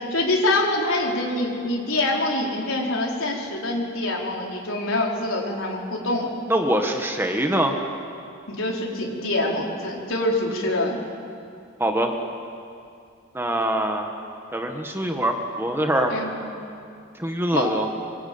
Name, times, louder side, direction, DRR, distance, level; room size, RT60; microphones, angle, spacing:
voice 1, 0.0-6.3 8.5-11.0 16.1-16.3 17.5-17.7, left 2 dB, 85° left, -1 dB, 4.9 m, -25 dB
voice 2, 6.5-7.8 11.8-12.1 13.3-14.1 14.5-16.1 17.1-17.9, right 1 dB, 10° right, 3 dB, 1.6 m, -23 dB
26.0 x 25.0 x 8.8 m, 2.5 s
head